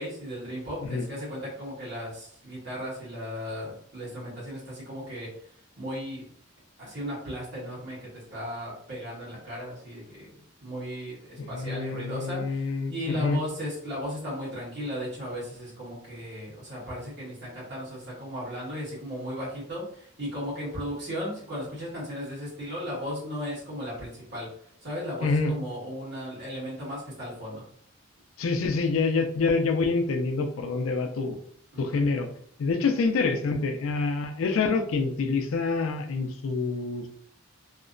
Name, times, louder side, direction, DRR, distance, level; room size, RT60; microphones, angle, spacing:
voice 1, 0.0-5.5 5.8-6.2 6.8-24.5 24.8-27.7 31.7-32.0, equal, 50° right, -7 dB, 1.5 m, -36 dB
voice 2, 11.4-13.4 25.2-25.5 28.4-31.4 31.8-32.3 32.6-37.1, left 4 dB, 80° left, 6 dB, 0.4 m, -26 dB
2.8 x 2.1 x 2.5 m, 0.64 s
head